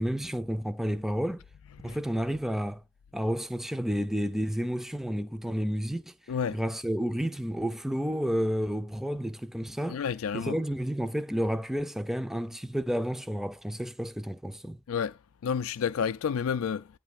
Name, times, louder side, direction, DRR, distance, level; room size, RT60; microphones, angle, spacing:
voice 1, 0.0-1.4 1.8-2.8 3.1-6.1 6.5-10.0 10.3-14.8, equal, ahead, 0.4 m, -31 dB
voice 2, 6.3-6.6 9.9-10.6 14.9-15.2 15.4-16.9, left 7 dB, 90° left, 0.4 m, -30 dB
9.8 x 3.4 x 7.0 m
head